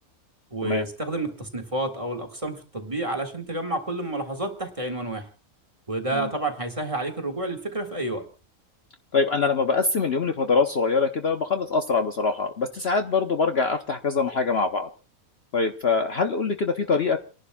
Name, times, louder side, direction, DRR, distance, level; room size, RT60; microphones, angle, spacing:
voice 1, 0.5-5.3 5.9-8.2, right 2 dB, 20° right, 3 dB, 1.9 m, -30 dB
voice 2, 9.1-14.9 15.5-17.2, left 4 dB, 50° left, 5 dB, 1.0 m, -24 dB
29.5 x 11.5 x 2.3 m, 0.34 s
omnidirectional pair, 1.5 m